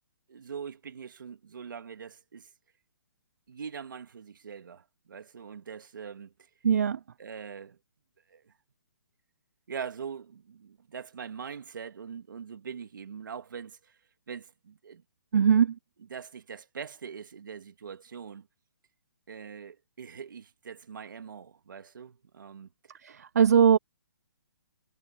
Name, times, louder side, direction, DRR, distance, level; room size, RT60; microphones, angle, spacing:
voice 1, 0.3-2.5 3.5-6.3 7.2-7.8 8.3-8.5 9.7-14.0 14.3-15.0 16.1-18.5 19.3-22.7, right 6 dB, 65° right, 2.5 m, -42 dB
voice 2, 6.6-7.0 15.3-15.8 23.0-23.8, right 7 dB, 45° right, 0.5 m, -21 dB
hypercardioid pair, 175°, 11 cm